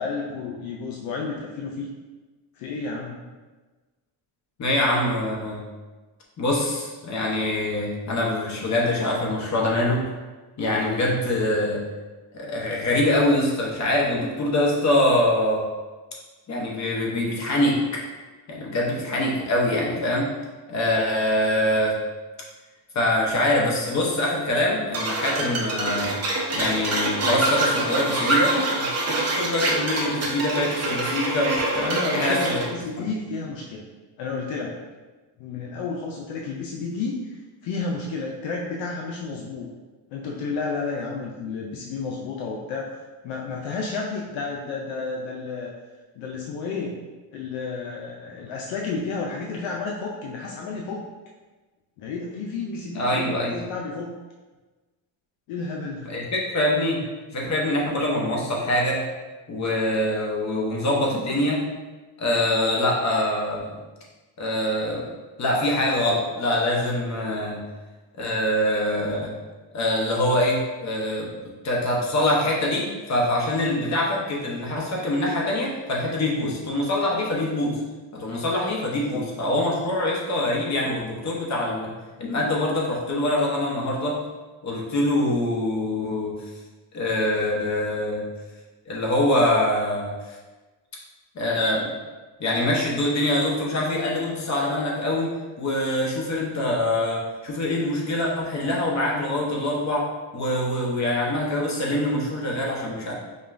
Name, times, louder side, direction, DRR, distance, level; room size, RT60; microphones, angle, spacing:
voice 1, 0.0-1.9 2.5-3.1 31.8-33.8 34.2-34.7 35.4-39.7 40.1-42.9 43.2-45.7 46.1-47.0 47.3-51.0 52.0-54.1 55.5-56.1 79.1-79.2, left 4 dB, 80° left, -2 dB, 0.6 m, -31 dB
voice 2, 4.6-5.6 6.4-10.0 10.6-11.8 12.3-15.6 16.5-18.0 18.5-20.3 20.7-22.0 22.9-26.1 26.5-32.6 33.0-33.1 52.9-53.6 56.1-57.0 57.3-59.0 59.5-61.6 62.2-63.8 64.4-65.1 65.4-67.6 68.2-69.3 69.7-71.3 71.6-77.8 78.1-81.9 82.2-84.2 84.6-86.3 86.9-88.2 88.9-90.4 91.3-91.9 92.4-95.3 95.6-100.1 100.3-103.1, left 1 dB, 35° left, -3 dB, 0.9 m, -24 dB
sound 1, 24.9-32.7, right 2 dB, 35° right, 0.8 m, -25 dB
5.2 x 2.2 x 2.5 m, 1.3 s
cardioid pair, 105°, 46 cm